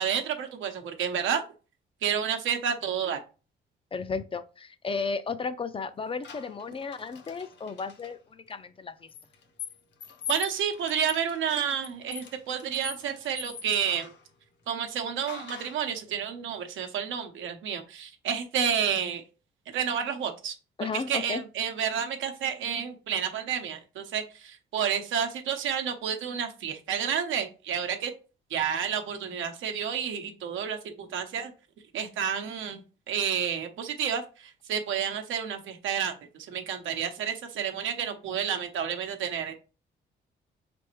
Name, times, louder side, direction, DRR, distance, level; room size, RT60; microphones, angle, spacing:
voice 1, 0.0-1.4 2.0-3.2 10.3-14.1 14.7-19.2 19.7-20.6 20.9-28.1 28.5-31.5 31.9-39.5, right 8 dB, 80° right, 0.8 m, -30 dB
voice 2, 3.9-9.1 20.8-21.4, left 4 dB, 25° left, 0.4 m, -34 dB
sound 1, 6.2-8.1 9.1-14.2 15.3-15.9, left 7 dB, 65° left, 0.8 m, -42 dB
4.1 x 3.4 x 3.0 m
cardioid pair, 90°, 20 cm